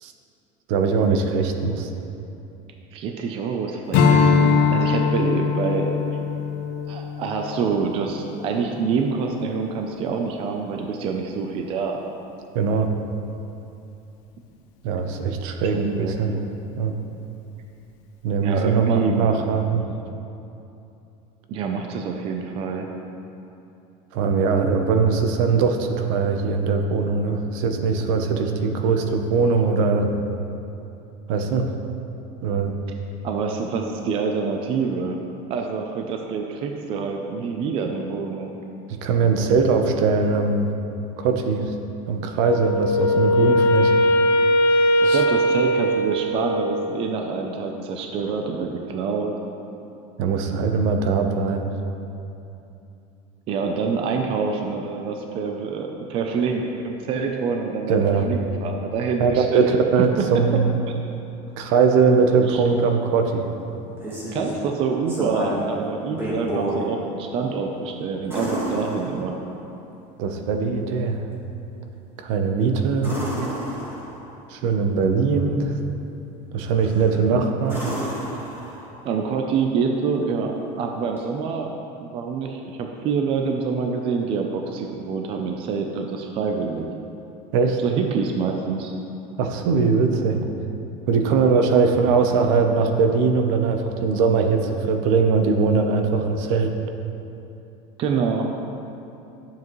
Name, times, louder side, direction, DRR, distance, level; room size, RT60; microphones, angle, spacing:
voice 1, 0.7-1.9 12.5-12.9 14.8-16.4 16.8-16.9 18.2-19.9 24.1-30.1 31.3-31.7 32.4-32.8 38.9-40.7 41.2-41.7 42.1-43.9 45.0-45.2 50.2-51.7 57.9-58.3 59.2-60.7 61.6-63.5 70.2-71.3 72.2-73.2 74.5-75.7 76.5-77.9 87.5-87.8 89.4-90.4 91.1-96.7, right 5 dB, 65° right, 5 dB, 0.8 m, -21 dB
voice 2, 2.9-5.9 6.9-12.0 15.7-16.4 18.4-19.3 21.5-22.9 33.2-35.2 35.5-38.6 45.0-49.3 53.5-59.7 62.5-62.6 64.3-69.4 79.0-80.5 80.8-81.7 82.0-86.9 87.8-88.9 98.0-98.6, right 5 dB, 30° right, 3 dB, 0.5 m, -26 dB
Strum, 3.9-8.6, left 5 dB, 55° left, 0.9 m, -21 dB
Wind instrument woodwind instrument, 42.4-46.8, left 1 dB, 75° left, 1.3 m, -19 dB
sound 1, 63.7-64.6 65.1-65.7 66.1-66.8 68.3-69.6 73.0-74.3 76.8-77.1 77.6-79.0 81.2-81.3, right 1 dB, 15° right, 1.6 m, -30 dB
12.0 x 7.5 x 3.1 m, 2.8 s
cardioid pair, 175°, 17 cm